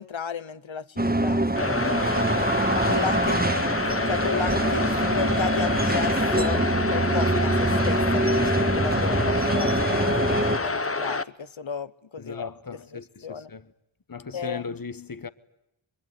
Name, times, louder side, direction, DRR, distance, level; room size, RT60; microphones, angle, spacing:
voice 1, 0.0-2.2 2.7-3.4 4.0-6.6 6.9-12.5 12.9-13.5 14.3-14.8, left 6 dB, 85° left, 1.0 m, -34 dB
sound 1, 1.0-10.6, right 1 dB, 20° right, 1.5 m, -24 dB
sound 2, 1.6-11.2, left 3 dB, 30° left, 0.9 m, -28 dB
voice 2, 2.0-2.4 12.2-13.7 14.1-15.3, left 5 dB, 45° left, 1.2 m, -37 dB
25.0 x 22.5 x 9.6 m
wide cardioid pair, 40°, 45 cm